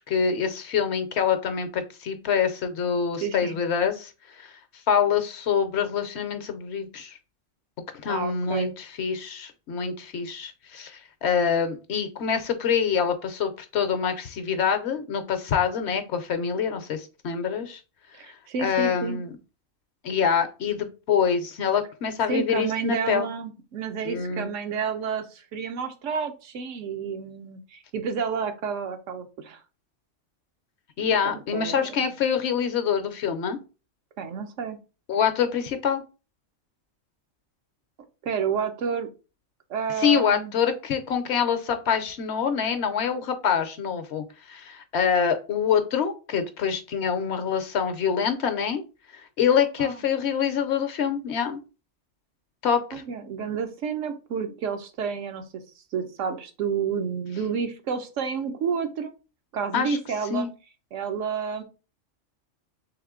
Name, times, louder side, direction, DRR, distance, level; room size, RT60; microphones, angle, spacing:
voice 1, 0.1-4.1 4.4-4.5 4.9-7.2 8.0-17.8 18.3-19.3 20.0-23.3 24.0-24.5 31.0-33.6 35.1-36.0 40.0-48.8 49.1-51.6 52.6-53.0 59.7-60.0 60.3-60.5, left 7 dB, 65° left, 9 dB, 0.8 m, -25 dB
voice 2, 3.2-3.6 8.1-8.7 18.1-19.2 22.3-29.6 31.2-32.1 34.2-34.8 38.2-39.1 39.7-40.5 49.8-50.0 52.9-55.4 55.9-59.1 59.5-60.5 60.9-61.6, right 6 dB, 75° right, 6 dB, 1.0 m, -30 dB
3.5 x 3.2 x 3.6 m, 0.32 s
omnidirectional pair, 1.3 m